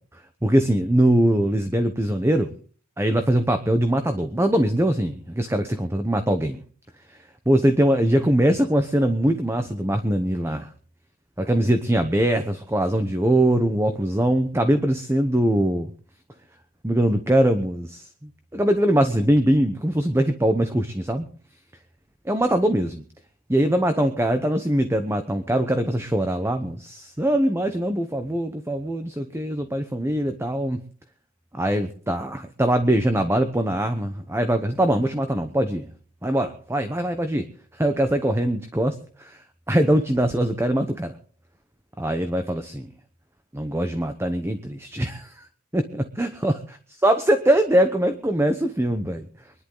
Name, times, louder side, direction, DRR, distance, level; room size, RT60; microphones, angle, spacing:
voice 1, 0.4-2.5 3.0-6.6 7.1-7.2 7.5-10.7 11.4-15.9 16.8-21.3 22.2-23.0 23.5-30.8 31.5-35.9 36.2-37.5 37.7-41.1 42.0-42.9 43.5-45.5 45.7-46.6 47.0-49.3, right 1 dB, 10° right, 8 dB, 0.9 m, -22 dB
24.0 x 11.0 x 3.9 m, 0.41 s
head